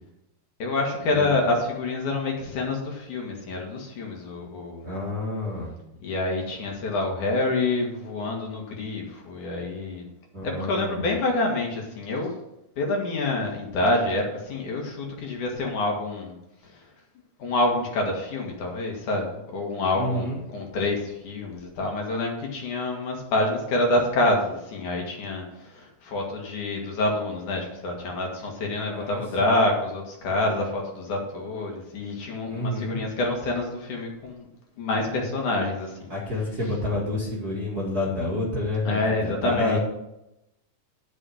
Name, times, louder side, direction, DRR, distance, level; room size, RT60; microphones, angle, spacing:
voice 1, 0.6-4.9 6.0-10.0 10.4-12.3 12.8-16.4 16.7-16.8 17.4-34.5 34.8-36.1 38.8-39.8, left 2 dB, 60° left, 0 dB, 3.1 m, -27 dB
voice 2, 4.8-5.7 10.3-11.1 19.9-20.4 28.9-29.6 32.5-33.0 36.1-39.0 39.2-39.8, left 2 dB, 30° right, -6 dB, 2.0 m, -29 dB
11.0 x 6.4 x 6.4 m, 0.88 s
omnidirectional pair, 4.2 m